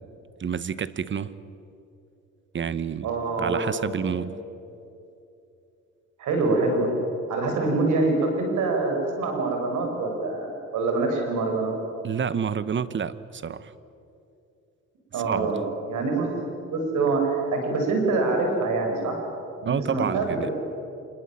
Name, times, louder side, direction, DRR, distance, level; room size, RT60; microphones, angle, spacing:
voice 1, 0.4-1.3 2.5-3.1 3.4-4.4 12.0-13.7 15.1-15.5 19.7-20.5, right 7 dB, 40° right, 15 dB, 1.0 m, -29 dB
voice 2, 3.0-3.7 6.2-6.9 7.3-11.8 15.1-15.6 15.9-19.2 19.6-20.3, right 3 dB, 80° right, 2 dB, 5.9 m, -25 dB
26.0 x 21.0 x 7.5 m, 2.7 s
cardioid pair, 90°, 30 cm